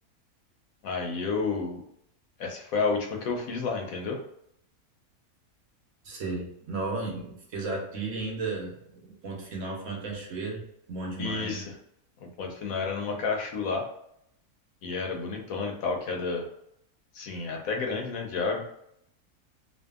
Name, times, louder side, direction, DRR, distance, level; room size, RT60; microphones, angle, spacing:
voice 1, 0.8-1.8 2.4-4.2 11.2-11.7 12.2-13.9 14.8-16.5 17.1-18.7, left 4 dB, 70° left, 2 dB, 1.0 m, -30 dB
voice 2, 6.0-10.6 10.9-11.6, right 3 dB, 60° right, -2 dB, 1.1 m, -34 dB
2.6 x 2.5 x 2.3 m, 0.73 s
omnidirectional pair, 1.6 m